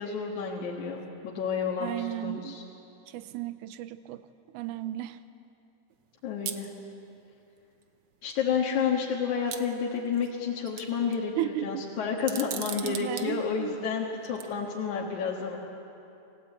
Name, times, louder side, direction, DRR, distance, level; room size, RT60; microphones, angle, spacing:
voice 1, 0.0-2.6 6.2-6.7 8.2-15.6, left 6 dB, 70° left, -2 dB, 3.0 m, -30 dB
voice 2, 1.8-2.6 3.1-4.3 4.5-5.2 11.4-12.2 12.5-13.8, right 14 dB, 80° right, 12 dB, 2.2 m, -35 dB
sound 1, 6.5-6.7 7.8-7.9 8.3-8.4 9.5-10.3 10.7-11.2 12.2-13.3 14.2-14.4, right 9 dB, 65° right, 1.4 m, -37 dB
28.0 x 16.0 x 8.4 m, 2.8 s
omnidirectional pair, 3.6 m